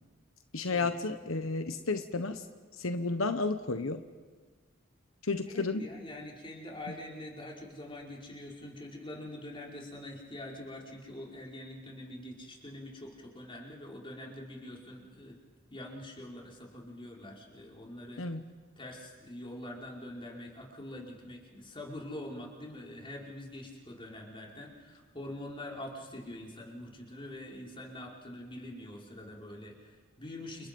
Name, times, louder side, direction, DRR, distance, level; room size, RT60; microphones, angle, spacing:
voice 1, 0.5-2.4 2.8-4.0 5.2-5.8 18.2-18.4, left 3 dB, 75° left, 8 dB, 1.2 m, -32 dB
voice 2, 5.5-15.4 15.7-18.2 18.8-30.7, left 1 dB, 25° left, -2 dB, 5.3 m, -44 dB
30.0 x 29.0 x 5.4 m, 1.4 s
head